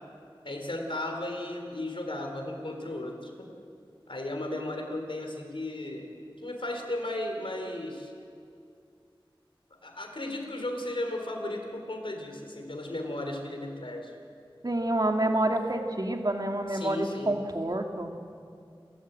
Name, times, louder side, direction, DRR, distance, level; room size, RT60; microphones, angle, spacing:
voice 1, 0.4-3.5 4.1-8.1 9.8-14.1 16.7-17.4, left 1 dB, 75° left, 2 dB, 3.8 m, -35 dB
voice 2, 14.6-18.1, right 1 dB, 45° right, 3 dB, 2.1 m, -28 dB
28.5 x 13.0 x 8.3 m, 2.4 s
wide cardioid pair, 40°, 9 cm